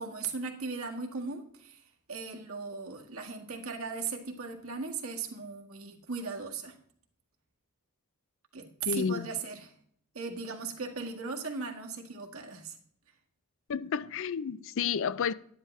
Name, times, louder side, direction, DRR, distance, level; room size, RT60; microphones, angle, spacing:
voice 1, 0.0-1.8 2.1-6.8 8.5-9.7 10.1-12.8, right 4 dB, 65° right, 1.7 m, -38 dB
voice 2, 8.9-9.3 13.7-15.3, left 6 dB, 60° left, 0.4 m, -31 dB
11.0 x 11.0 x 3.2 m
head